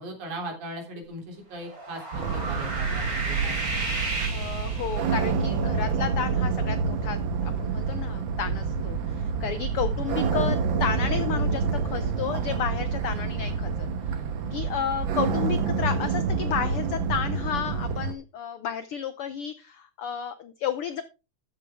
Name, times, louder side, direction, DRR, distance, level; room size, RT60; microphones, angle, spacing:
voice 1, 0.0-3.8, right 1 dB, 80° right, 2 dB, 4.7 m, -39 dB
sound 1, 1.6-5.3, right 2 dB, 30° right, 3.3 m, -33 dB
sound 2, 2.1-18.1, right 5 dB, 60° right, 1.3 m, -27 dB
voice 2, 4.3-21.0, left 8 dB, 85° left, 12 dB, 1.2 m, -32 dB
13.0 x 8.6 x 3.5 m, 0.30 s
omnidirectional pair, 3.4 m